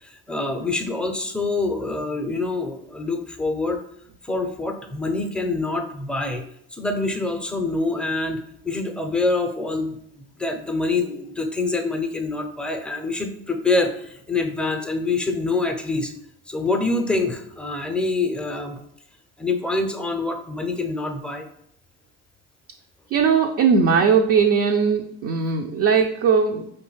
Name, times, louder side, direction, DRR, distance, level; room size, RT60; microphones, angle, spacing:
voice 1, 0.0-3.8 4.2-6.4 6.7-16.1 16.5-18.8 19.4-21.4, left 3 dB, 5° left, 4 dB, 0.6 m, -25 dB
voice 2, 23.1-26.7, right 6 dB, 45° right, 3 dB, 0.5 m, -19 dB
4.9 x 3.2 x 3.1 m, 0.70 s
hypercardioid pair, 70°, 33 cm